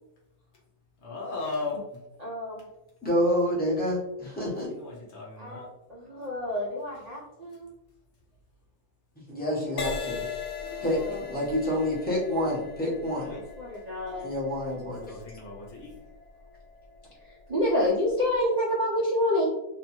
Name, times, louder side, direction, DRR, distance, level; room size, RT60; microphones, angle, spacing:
voice 1, 1.0-1.8 4.7-5.7 10.6-11.2 13.2-13.4 13.7-14.2 15.0-16.0, left 3 dB, 60° left, -3 dB, 0.8 m, -37 dB
voice 2, 2.2-2.7 5.4-7.7 10.9-11.2 13.6-14.3 17.2-19.5, left 1 dB, 55° right, -5 dB, 0.4 m, -28 dB
voice 3, 3.0-4.7 9.3-10.3 10.8-11.0 11.3-13.3 14.2-15.1, equal, 10° left, -6 dB, 0.6 m, -28 dB
Crash cymbal, 9.8-17.4 18.1-18.4, left 6 dB, 90° left, 1.1 m, -39 dB
2.6 x 2.2 x 2.9 m, 0.92 s
omnidirectional pair, 1.5 m